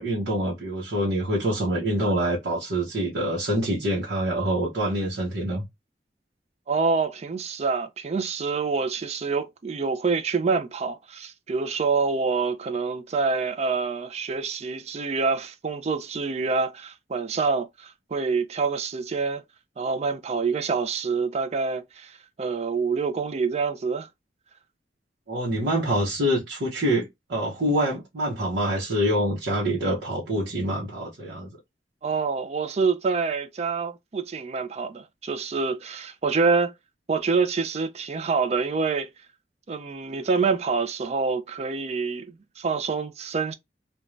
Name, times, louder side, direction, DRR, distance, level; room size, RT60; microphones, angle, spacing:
voice 1, 0.0-5.7 25.3-31.6, right 1 dB, 70° right, 0.8 m, -26 dB
voice 2, 6.7-19.4 19.8-24.1 32.0-36.7 37.1-39.1 39.7-43.5, right 4 dB, 40° right, 0.4 m, -26 dB
2.5 x 2.2 x 3.1 m
head